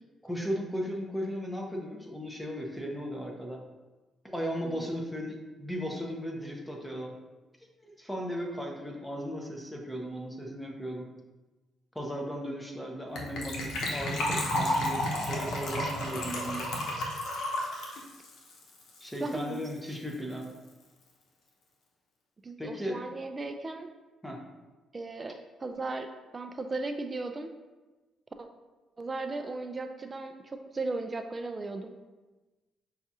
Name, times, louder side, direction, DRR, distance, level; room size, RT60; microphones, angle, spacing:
voice 1, 0.2-3.6 4.2-7.1 7.8-11.1 11.9-16.7 19.0-20.5 22.6-23.0 24.2-24.4, equal, 5° left, 0 dB, 0.7 m, -36 dB
Gurgling / Trickle dribble / Fill (with liquid), 13.2-19.4 19.6-19.7 19.9-20.1 20.4-20.5, left 1 dB, 75° left, 0.8 m, -32 dB
voice 2, 19.2-19.6 22.4-23.9 24.9-26.1 26.3-27.5 28.4-28.5 29.0-31.9, right 3 dB, 30° right, 6 dB, 0.3 m, -36 dB
5.7 x 2.4 x 2.7 m, 1.2 s
cardioid pair, 90°, 0 cm